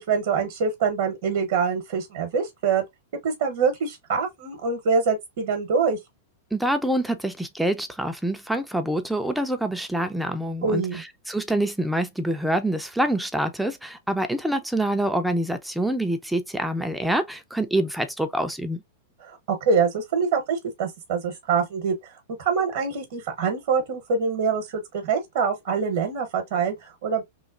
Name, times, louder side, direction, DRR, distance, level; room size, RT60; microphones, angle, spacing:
voice 1, 0.0-2.8 3.2-6.0 10.6-11.0 19.2-22.1 22.4-27.3, right 5 dB, 55° right, 0.8 m, -25 dB
voice 2, 6.5-18.8, right 1 dB, ahead, 0.4 m, -26 dB
3.1 x 2.1 x 2.4 m
figure-of-eight pair, 95°, 0 cm